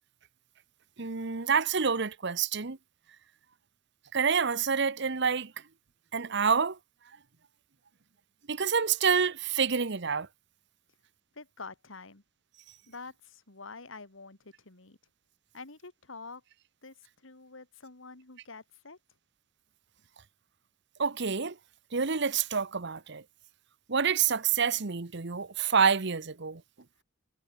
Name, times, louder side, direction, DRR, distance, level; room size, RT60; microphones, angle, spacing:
voice 1, 1.0-2.8 4.1-5.5 6.1-6.8 8.5-10.3 21.0-21.5 21.9-23.2 23.9-26.6, right 6 dB, 60° right, 1.1 m, -27 dB
voice 2, 11.3-12.2 12.9-15.0 15.5-16.4 16.8-16.9 17.2-19.0, left 4 dB, 80° left, 2.4 m, -47 dB
head